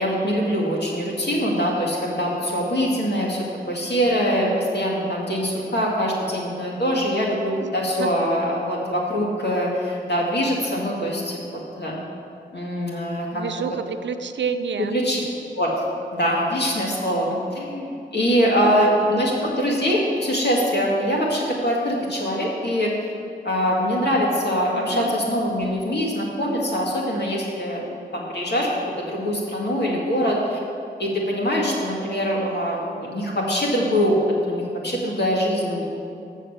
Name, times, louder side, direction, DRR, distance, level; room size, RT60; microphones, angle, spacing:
voice 1, 0.0-12.0 12.5-13.4 14.9-15.2 15.6-15.7 16.1-22.9 23.4-27.9 28.1-28.7 29.0-30.6 31.0-34.2 34.5-36.0, equal, 70° left, -3 dB, 2.1 m, -23 dB
voice 2, 4.2-4.7 7.6-8.3 13.3-15.0 18.6-18.9 24.7-25.2, right 6 dB, 85° right, 10 dB, 0.5 m, -30 dB
7.4 x 6.6 x 7.1 m, 2.4 s
cardioid pair, 50°, 18 cm